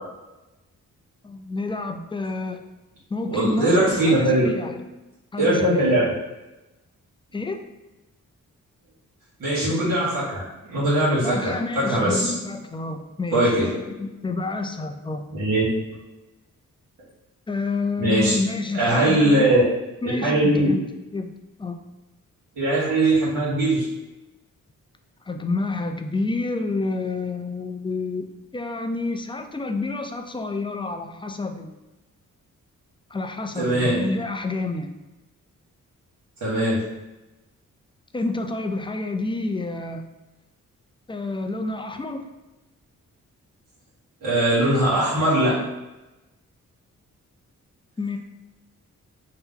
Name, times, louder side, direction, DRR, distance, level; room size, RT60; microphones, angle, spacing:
voice 1, 1.2-2.6 3.1-4.9 5.3-6.0 7.3-7.6 11.2-15.2 17.5-19.7 20.0-20.8 21.1-21.3 21.6-21.8 25.3-31.8 33.1-34.9 38.1-40.1 41.1-42.3 48.0-48.2, left 3 dB, 15° left, 5 dB, 0.3 m, -29 dB
voice 2, 3.3-4.5 5.4-6.0 9.4-10.4 10.7-12.3 13.3-13.8 15.3-15.6 18.0-18.4 18.7-19.6 20.0-20.7 22.6-23.9 33.6-34.1 36.4-36.9 44.2-45.7, right 1 dB, 65° right, -9 dB, 1.2 m, -20 dB
2.8 x 2.1 x 3.6 m, 1.0 s
cardioid pair, 50°, 35 cm